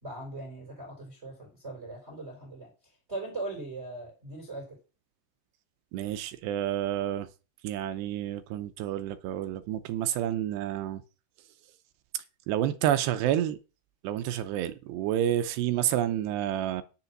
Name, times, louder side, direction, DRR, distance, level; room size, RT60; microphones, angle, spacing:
voice 1, 0.0-2.7 3.1-4.8, right 2 dB, 15° right, 4.1 m, -39 dB
voice 2, 5.9-7.3 7.6-11.0 12.1-13.6 14.0-16.8, right 11 dB, 80° right, 2.5 m, -29 dB
10.5 x 6.7 x 6.0 m
omnidirectional pair, 5.7 m